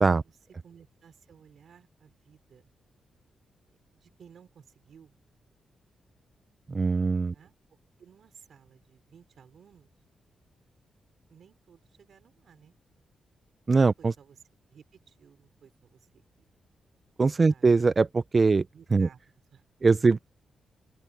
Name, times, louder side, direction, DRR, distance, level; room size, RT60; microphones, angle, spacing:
voice 1, 0.6-2.7 3.7-5.2 7.3-7.5 8.0-9.9 11.3-12.8 13.8-14.4 14.7-16.5 17.5-17.7 18.5-19.2 19.5-19.6, right 7 dB, 70° right, 5.2 m, -57 dB
voice 2, 6.7-7.3 13.7-14.1 17.2-18.6 18.9-19.1 19.8-20.2, right 4 dB, 40° right, 0.6 m, -22 dB
open air
supercardioid pair, 50°, 0 cm